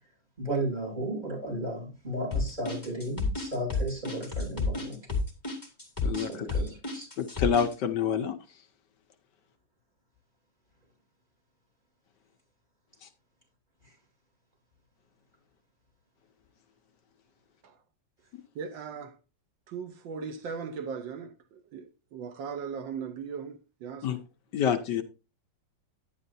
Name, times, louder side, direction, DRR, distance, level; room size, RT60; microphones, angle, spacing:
voice 1, 0.4-5.0 6.1-7.1, right 1 dB, 20° right, 6.6 m, -34 dB
sound 1, 2.3-7.7, left 3 dB, 10° left, 2.2 m, -30 dB
voice 2, 7.2-8.4 24.0-24.2 24.5-25.0, left 8 dB, 70° left, 1.4 m, -27 dB
voice 3, 18.5-19.2 19.7-24.2, right 6 dB, 80° right, 1.6 m, -38 dB
10.5 x 10.0 x 2.6 m
omnidirectional pair, 2.0 m